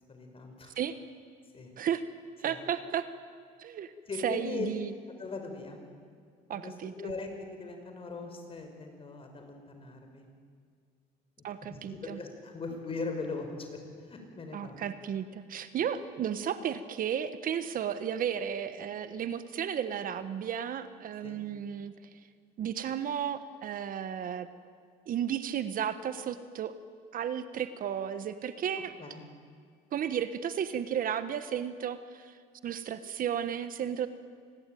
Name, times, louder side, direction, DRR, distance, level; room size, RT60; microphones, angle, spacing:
voice 1, 0.1-0.8 1.5-1.7 2.5-2.6 4.1-4.7 5.2-5.8 6.5-10.2 11.6-13.7 14.0-14.8 21.2-21.4 29.0-29.2, left 3 dB, 35° left, 4 dB, 5.6 m, -40 dB
voice 2, 2.4-3.0 3.6-3.9 4.2-4.9 6.5-7.1 11.4-12.2 14.5-21.9 22.6-24.5 25.1-26.7 27.1-28.9 29.9-32.3 32.6-34.1, right 9 dB, 55° right, 11 dB, 1.4 m, -33 dB
27.5 x 20.5 x 9.3 m, 2.1 s
cardioid pair, 110°, 17 cm